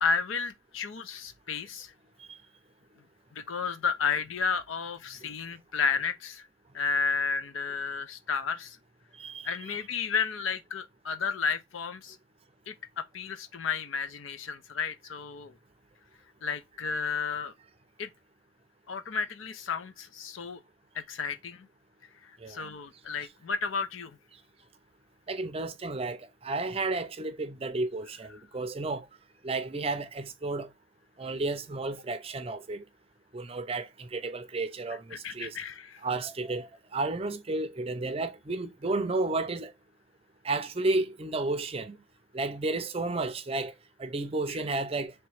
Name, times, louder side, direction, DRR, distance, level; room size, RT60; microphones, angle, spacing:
voice 1, 0.0-1.9 3.3-6.5 6.7-8.8 9.4-12.2 12.7-15.5 16.4-17.5 18.0-18.1 18.9-20.6 20.9-21.7 22.2-24.2 35.1-36.0, left 5 dB, 80° left, 0.6 m, -32 dB
voice 2, 9.1-9.8 22.4-22.7 25.3-29.1 29.4-30.7 31.2-32.8 33.3-35.6 36.0-39.7 40.4-42.0 42.3-43.7 44.0-45.1, right 2 dB, 30° right, 0.5 m, -32 dB
3.2 x 3.0 x 4.7 m
head